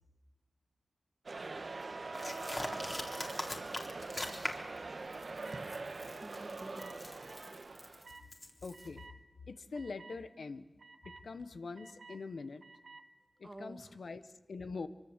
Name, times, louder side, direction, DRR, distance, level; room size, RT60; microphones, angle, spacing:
sound 1, 1.3-8.1, right 3 dB, 65° right, 1.4 m, -43 dB
sound 2, 1.6-3.4 4.1-4.4 5.4-5.6 6.8-6.9 8.0-8.3 8.7-9.2 9.7-10.2 10.8-11.2 11.8-12.2 12.6-13.0, right 3 dB, 80° right, 2.3 m, -51 dB
sound 3, 2.1-4.8 5.1-8.9, left 1 dB, 30° left, 3.8 m, -43 dB
voice 1, 4.7-5.7 6.2-6.9 13.4-13.9, right 1 dB, 25° right, 7 dB, 2.3 m, -51 dB
voice 2, 8.6-9.1 9.5-10.7 11.0-12.6 13.4-14.9, left 4 dB, 85° left, 11 dB, 1.2 m, -44 dB
24.5 x 24.5 x 8.1 m, 1.2 s
wide cardioid pair, 55°, 0 cm